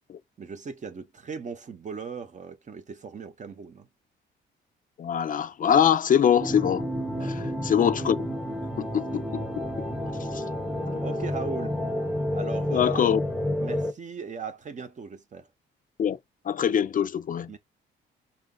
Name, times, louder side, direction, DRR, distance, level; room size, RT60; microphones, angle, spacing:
voice 1, 0.4-3.9 7.2-7.4 11.0-11.8 12.3-13.0 13.6-15.5 17.5-17.6, right 5 dB, 40° right, 0.8 m, -38 dB
voice 2, 5.0-6.9 7.2-8.2 8.8-9.6 10.3-10.4 12.7-13.2 16.0-16.2 16.5-17.5, left 8 dB, 45° left, 0.5 m, -23 dB
sound 1, 6.4-13.9, left 1 dB, ahead, 0.9 m, -30 dB
5.5 x 2.5 x 3.8 m
cardioid pair, 90°, 20 cm